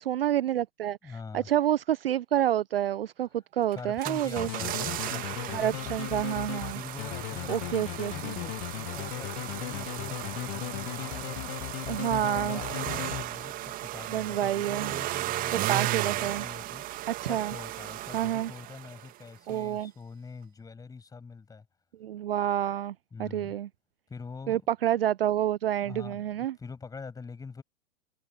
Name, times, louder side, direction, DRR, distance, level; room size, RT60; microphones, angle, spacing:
voice 1, 0.0-4.5 5.5-6.8 7.5-8.4 11.9-12.6 14.1-14.9 15.5-16.4 17.1-17.5 18.1-18.5 19.5-19.9 22.0-23.7 24.5-26.6, right 11 dB, 50° right, 0.9 m, -28 dB
voice 2, 1.0-1.5 3.7-5.8 6.7-11.6 12.0-16.8 17.3-21.7 23.1-23.6 24.1-24.6 25.8-27.6, left 4 dB, 10° left, 7.6 m, -44 dB
sound 1, 3.7-19.2 19.5-19.6, right 16 dB, 20° right, 1.9 m, -35 dB
sound 2, 4.4-13.7, left 40 dB or more, 25° left, 1.0 m, -37 dB
figure-of-eight pair, 110°, 38 cm